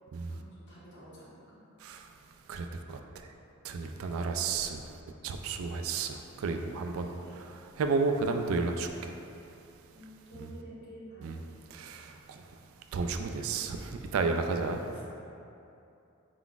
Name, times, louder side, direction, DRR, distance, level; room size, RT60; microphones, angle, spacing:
voice 1, 0.3-1.6 4.3-4.6 7.0-7.3 9.9-11.4 14.6-15.0, right 1 dB, 55° left, -9 dB, 1.3 m, -51 dB
voice 2, 2.5-3.3 3.6-4.8 5.2-9.1 10.4-10.5 11.2-11.4 11.7-12.4 12.9-14.8, right 4 dB, 70° right, 5 dB, 0.3 m, -32 dB
5.0 x 3.8 x 2.3 m, 2.7 s
head